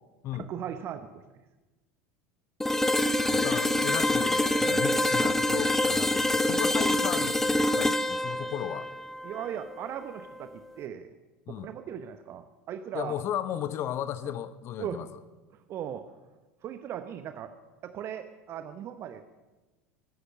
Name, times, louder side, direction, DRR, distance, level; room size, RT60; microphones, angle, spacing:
voice 1, 0.4-1.2 4.7-4.8 9.2-11.1 11.5-13.1 14.2-14.3 14.8-15.0 15.5-16.1 16.6-17.5 17.8-19.3, right 9 dB, 40° right, 9 dB, 0.9 m, -38 dB
sound 1, 2.6-10.4, left 1 dB, 5° left, 0.7 m, -26 dB
voice 2, 3.3-8.9 11.5-11.7 12.9-15.1, left 10 dB, 40° left, 14 dB, 0.8 m, -35 dB
19.5 x 9.8 x 6.4 m, 1.2 s
figure-of-eight pair, 75°, 7 cm